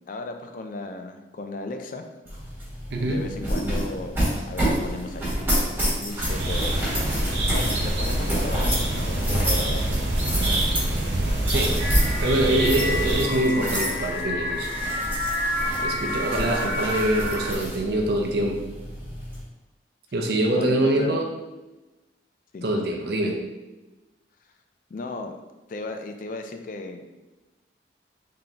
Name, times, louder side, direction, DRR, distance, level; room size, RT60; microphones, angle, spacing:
voice 1, 0.1-2.0 3.0-10.0 10.4-10.6 16.3-16.8 20.6-21.2 22.5-22.7 24.9-25.3 25.7-27.1, left 2 dB, 45° left, 5 dB, 0.3 m, -36 dB
sound 1, 2.3-19.4, equal, 10° right, 1.4 m, -29 dB
voice 2, 2.9-3.2 11.5-11.8 12.2-14.7 15.8-18.6 20.1-21.3 22.6-23.4, right 1 dB, 60° right, 1 dB, 0.6 m, -24 dB
sound 2, 6.2-13.2, right 1 dB, 85° right, 0.9 m, -25 dB
sound 3, 11.8-17.5, left 1 dB, 30° right, 0.8 m, -29 dB
3.8 x 3.7 x 2.8 m, 1.1 s
head